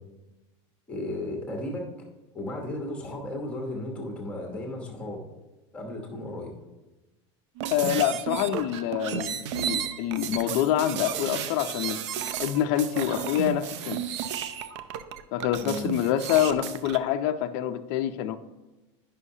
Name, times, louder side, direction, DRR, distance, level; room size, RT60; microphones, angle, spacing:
voice 1, 0.9-1.9 2.3-5.2 5.7-6.5 15.6-15.9, left 1 dB, 10° left, 0 dB, 0.9 m, -34 dB
sound 1, 7.6-17.0, right 9 dB, 75° right, 0.5 m, -33 dB
voice 2, 7.7-12.0 12.4-14.0 15.3-18.4, left 11 dB, 40° left, 8 dB, 0.4 m, -26 dB
9.8 x 5.5 x 2.7 m, 1.1 s
supercardioid pair, 175°, 15 cm